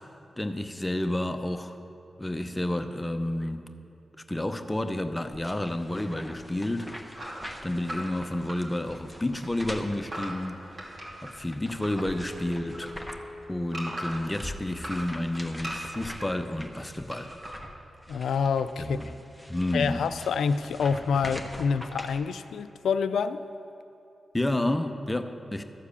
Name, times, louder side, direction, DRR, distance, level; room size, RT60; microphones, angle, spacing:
voice 1, 0.4-1.8 2.2-3.7 4.3-10.8 11.2-12.9 13.5-17.3 18.8-19.2 19.5-20.1 24.3-25.6, left 1 dB, 15° left, 8 dB, 0.7 m, -30 dB
sound 1, 5.3-13.4 13.7-22.2, equal, 5° right, 1.1 m, -44 dB
sound 2, 7.1-9.0 9.3-12.0 12.4-14.3 14.7-16.3 17.1-17.6, equal, 50° right, 2.6 m, -39 dB
Mallet percussion, 12.1-15.0, left 1 dB, 30° right, 1.3 m, -45 dB
voice 2, 18.1-19.0 19.7-23.4, left 6 dB, 85° left, 12 dB, 0.3 m, -27 dB
14.0 x 4.8 x 7.0 m, 2.8 s
cardioid pair, 55°, 0 cm